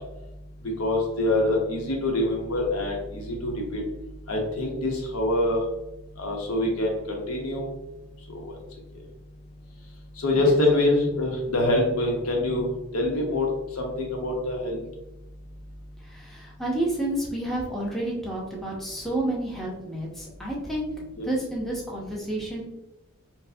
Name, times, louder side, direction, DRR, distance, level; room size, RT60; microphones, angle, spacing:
voice 1, 0.8-3.8 4.3-5.6 6.2-7.7 8.3-8.4 10.2-13.5 13.8-14.8 21.2-21.3, left 1 dB, 85° left, 0 dB, 0.8 m, -25 dB
voice 2, 16.0-20.9 21.2-22.6, right 1 dB, ahead, -4 dB, 0.6 m, -30 dB
4.5 x 2.1 x 2.6 m, 0.96 s
head